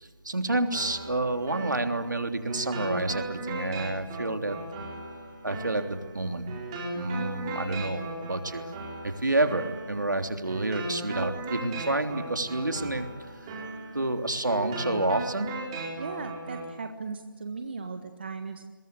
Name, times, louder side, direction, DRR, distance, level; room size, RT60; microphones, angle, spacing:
voice 1, 0.0-4.6 5.4-6.5 6.9-8.6 9.0-13.1 13.5-13.6 13.9-15.5, right 2 dB, 60° right, 6 dB, 3.4 m, -29 dB
sound 1, 0.7-16.7, right 2 dB, 15° right, 4.3 m, -37 dB
voice 2, 16.0-18.6, right 4 dB, 30° right, 6 dB, 1.5 m, -37 dB
29.5 x 22.5 x 8.3 m, 1.3 s
figure-of-eight pair, 160°, 11 cm